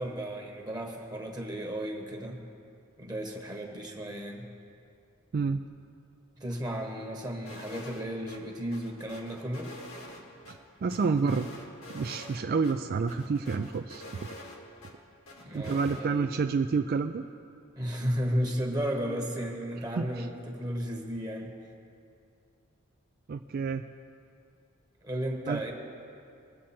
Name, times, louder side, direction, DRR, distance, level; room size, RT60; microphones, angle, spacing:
voice 1, 0.0-2.4 3.0-4.4 6.4-9.7 15.4-16.3 17.8-21.5 25.0-25.7, equal, 20° right, 2 dB, 1.2 m, -34 dB
voice 2, 5.3-5.6 10.5-11.5 11.9-14.3 15.5-17.2 20.0-20.3 23.3-23.8 25.5-25.6, right 5 dB, 45° right, 7 dB, 0.3 m, -29 dB
sound 1, 7.5-8.0 8.3-8.4 8.7-10.5 10.9-12.4 12.6-12.7 13.1-14.9 15.3-16.0, left 1 dB, 85° left, 1.9 m, -46 dB
21.5 x 7.6 x 4.3 m, 2.5 s
head